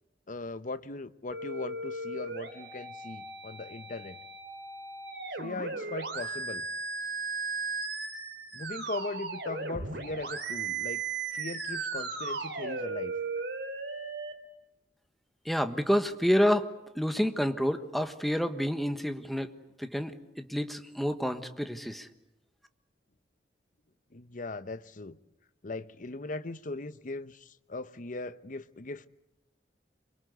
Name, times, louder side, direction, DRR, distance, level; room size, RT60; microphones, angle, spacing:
voice 1, 0.3-4.2 5.4-6.7 8.5-11.0 11.3-13.1 24.1-25.2 25.6-29.1, left 2 dB, 50° left, 1.0 m, -39 dB
sound 1, 1.3-14.3, right 4 dB, 85° right, 3.7 m, -36 dB
voice 2, 15.4-16.7 16.9-19.5 19.8-22.1, equal, ahead, 1.4 m, -28 dB
27.0 x 23.0 x 8.2 m
head